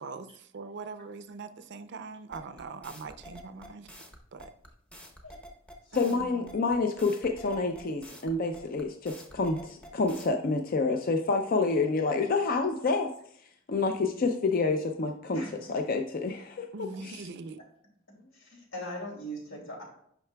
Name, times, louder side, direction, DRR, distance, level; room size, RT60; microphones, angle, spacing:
voice 1, 0.0-3.9 4.3-4.5 5.9-6.5 16.7-17.6, right 4 dB, 60° right, 11 dB, 0.5 m, -42 dB
sound 1, 2.3-10.3, equal, 5° left, 0.8 m, -48 dB
voice 2, 5.9-13.1 13.7-17.2, left 3 dB, 45° left, 5 dB, 0.5 m, -28 dB
voice 3, 15.3-15.7 18.3-19.8, equal, 85° left, -2 dB, 2.6 m, -40 dB
8.9 x 5.7 x 2.2 m, 0.68 s
head